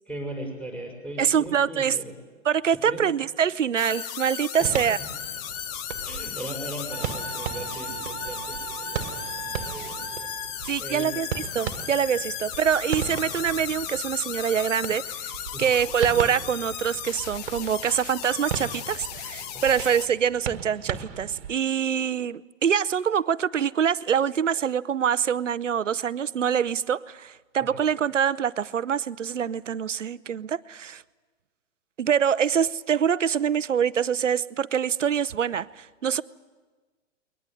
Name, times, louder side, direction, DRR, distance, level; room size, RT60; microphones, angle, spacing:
voice 1, 0.1-2.1 2.9-3.0 4.6-4.8 6.0-10.3 10.8-11.1 15.5-15.7 19.5-19.8 27.6-27.8, right 1 dB, 5° left, 5.6 m, -38 dB
voice 2, 1.2-2.0 2.4-5.0 10.7-11.3 11.5-15.3 15.6-31.0 32.0-36.2, right 8 dB, 70° right, 0.8 m, -25 dB
sound 1, 3.8-20.1, left 10 dB, 30° left, 1.1 m, -36 dB
sound 2, 4.6-21.6, right 8 dB, 50° right, 1.6 m, -37 dB
sound 3, 6.9-10.6, right 12 dB, 30° right, 1.1 m, -39 dB
22.0 x 19.5 x 9.8 m
figure-of-eight pair, 115°, 38 cm